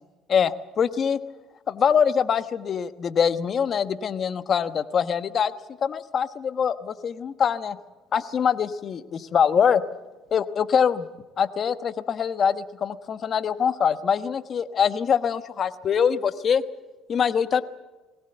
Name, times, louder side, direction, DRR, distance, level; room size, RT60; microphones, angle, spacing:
voice 1, 0.3-1.2 1.7-5.5 5.8-7.8 8.1-9.8 10.3-11.1 11.4-16.6 17.1-17.6, left 7 dB, 45° left, 11 dB, 1.2 m, -23 dB
21.0 x 18.5 x 8.0 m, 1.2 s
cardioid pair, 105°, 0 cm